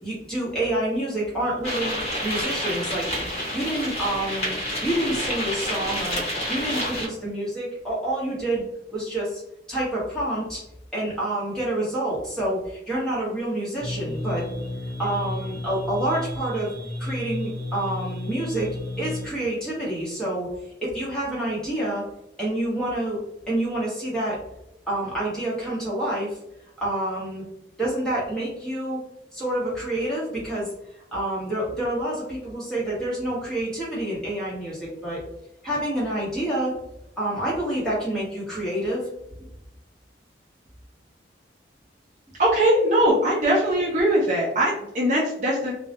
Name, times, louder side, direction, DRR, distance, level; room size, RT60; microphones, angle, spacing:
voice 1, 0.0-4.5 4.8-6.2 6.5-8.6 8.9-9.4 9.7-10.6 10.9-14.4 15.0-16.7 17.0-18.7 19.0-20.5 20.8-22.0 22.4-23.2 23.5-24.4 24.9-26.4 26.8-27.4 27.8-29.0 29.3-30.7 31.1-35.2 35.6-36.7 37.2-39.0 39.4-39.5, right 1 dB, 5° left, -8 dB, 0.9 m, -28 dB
sound 1, 1.6-7.1, equal, 35° left, 0.8 m, -29 dB
sound 2, 13.8-19.3, left 1 dB, 20° right, 1.1 m, -32 dB
voice 2, 42.4-45.7, right 1 dB, 40° right, -4 dB, 0.4 m, -21 dB
2.2 x 2.0 x 2.8 m, 0.85 s
head